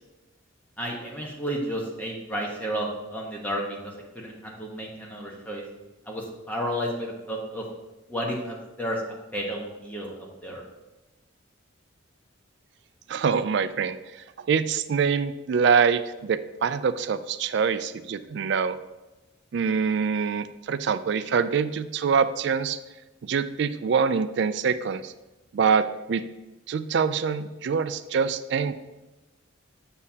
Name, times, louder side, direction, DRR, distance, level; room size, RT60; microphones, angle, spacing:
voice 1, 0.8-5.6 6.1-7.6 8.1-9.0 9.3-10.6, equal, 10° left, -2 dB, 1.0 m, -32 dB
voice 2, 13.1-14.0 14.5-18.8 19.5-22.8 23.2-25.1 25.5-26.2 26.7-28.7, right 6 dB, 60° right, 13 dB, 0.3 m, -25 dB
7.2 x 6.7 x 2.8 m, 1.1 s
head